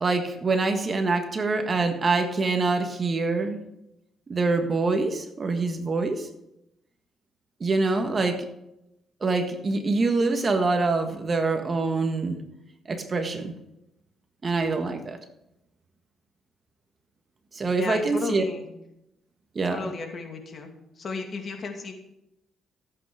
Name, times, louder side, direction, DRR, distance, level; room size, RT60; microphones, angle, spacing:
voice 1, 0.0-3.6 4.3-6.3 7.6-8.4 9.2-12.4 12.9-13.5 14.4-15.2 17.5-18.4 19.5-19.9, right 3 dB, 35° right, 6 dB, 1.6 m, -25 dB
voice 2, 17.8-18.6 19.7-20.7 21.0-21.9, left 4 dB, 45° left, 3 dB, 2.5 m, -34 dB
15.0 x 8.3 x 5.1 m, 0.85 s
cardioid pair, 90°, 0 cm